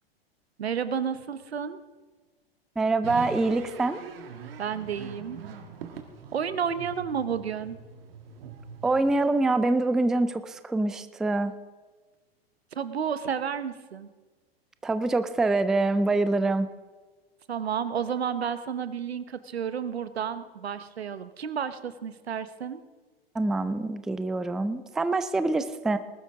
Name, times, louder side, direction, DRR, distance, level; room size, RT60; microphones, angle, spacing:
voice 1, 0.6-1.8 4.6-5.4 6.3-7.8 12.7-14.1 17.5-22.8, right 7 dB, 85° right, 13 dB, 1.0 m, -31 dB
voice 2, 2.8-4.0 8.8-11.5 14.8-16.7 23.4-26.0, right 2 dB, ahead, 12 dB, 0.3 m, -25 dB
sound 1, 3.0-9.4, right 6 dB, 65° right, 1.7 m, -43 dB
20.0 x 12.0 x 3.6 m, 1.4 s
hypercardioid pair, 110°, 31 cm